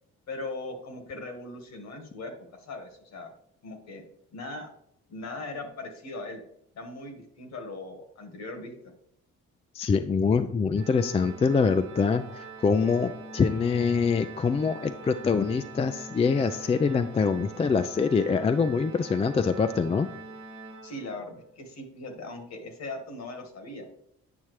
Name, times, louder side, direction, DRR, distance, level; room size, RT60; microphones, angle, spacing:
voice 1, 0.3-3.3 3.6-4.0 4.3-4.7 5.1-6.4 6.7-8.7 20.8-23.9, left 2 dB, 60° left, 5 dB, 1.5 m, -39 dB
voice 2, 9.8-12.2 12.6-20.1, left 5 dB, 20° left, 9 dB, 0.3 m, -24 dB
Organ, 10.7-21.5, right 3 dB, 80° right, 1.1 m, -44 dB
8.8 x 5.5 x 3.1 m, 0.76 s
cardioid pair, 90°, 30 cm